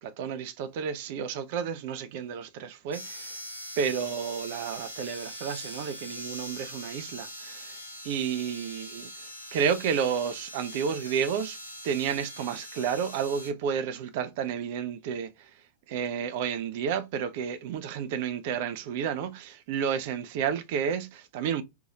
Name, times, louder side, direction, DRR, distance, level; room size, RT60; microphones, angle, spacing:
voice 1, 0.0-3.3 3.8-7.8 8.0-9.1 9.5-11.6 11.8-15.3 15.9-21.6, right 7 dB, 50° right, 0.3 m, -31 dB
sound 1, 2.9-13.5, equal, 90° left, 0.6 m, -42 dB
2.6 x 2.2 x 2.8 m
figure-of-eight pair, 90°, 0 cm